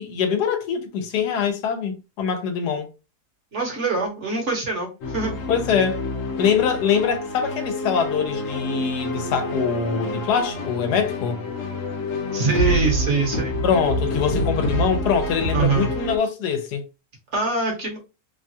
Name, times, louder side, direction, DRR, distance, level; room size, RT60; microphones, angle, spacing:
voice 1, 0.0-2.9 5.5-6.0 6.4-11.4 13.6-16.8, left 7 dB, 85° left, 1.2 m, -23 dB
voice 2, 3.5-5.4 12.3-13.5 15.5-15.9 17.3-18.0, right 3 dB, 50° right, 1.1 m, -24 dB
sound 1, 5.0-16.2, left 1 dB, 60° left, 1.1 m, -27 dB
3.0 x 2.3 x 2.6 m
omnidirectional pair, 1.7 m